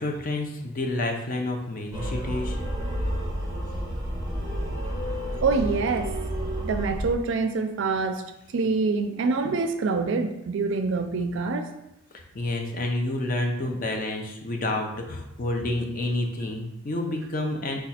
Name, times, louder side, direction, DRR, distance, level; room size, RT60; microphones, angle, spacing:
voice 1, 0.0-2.6 12.3-17.8, left 2 dB, 40° left, 2 dB, 0.6 m, -29 dB
sound 1, 1.9-7.1, equal, 20° right, 0.7 m, -30 dB
voice 2, 5.4-6.1 6.6-8.2 8.5-11.7, right 4 dB, 65° right, 8 dB, 0.4 m, -25 dB
4.8 x 2.3 x 4.2 m, 0.86 s
head